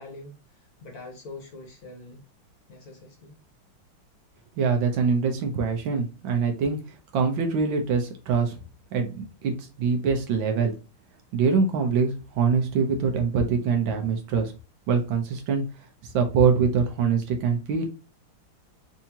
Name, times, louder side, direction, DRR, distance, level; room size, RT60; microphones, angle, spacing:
voice 1, 0.0-2.2 2.7-3.4, left 2 dB, 50° left, 1 dB, 1.4 m, -44 dB
voice 2, 4.6-6.8 7.1-8.6 8.9-10.7 11.3-14.5 14.9-15.6 16.0-17.9, right 5 dB, 75° right, 4 dB, 1.5 m, -24 dB
4.7 x 2.7 x 2.8 m, 0.32 s
omnidirectional pair, 2.3 m